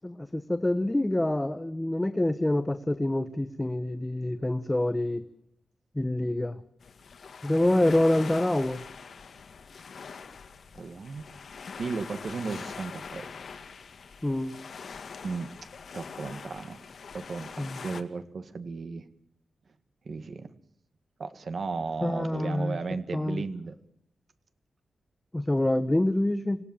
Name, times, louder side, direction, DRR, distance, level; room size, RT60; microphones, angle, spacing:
voice 1, 0.0-5.2 5.9-6.6 7.4-8.8 14.2-14.5 17.6-17.8 22.0-22.8 23.1-23.4 25.3-26.6, left 1 dB, 10° left, 10 dB, 1.1 m, -26 dB
sound 1, 6.8-18.0, left 5 dB, 65° left, 2.2 m, -43 dB
voice 2, 10.7-11.2 11.5-13.3 15.2-15.5 15.9-16.8 17.1-19.1 20.0-20.5 21.2-23.8, right 4 dB, 55° right, 10 dB, 1.8 m, -35 dB
27.0 x 17.0 x 7.3 m, 0.74 s
wide cardioid pair, 135°, 0 cm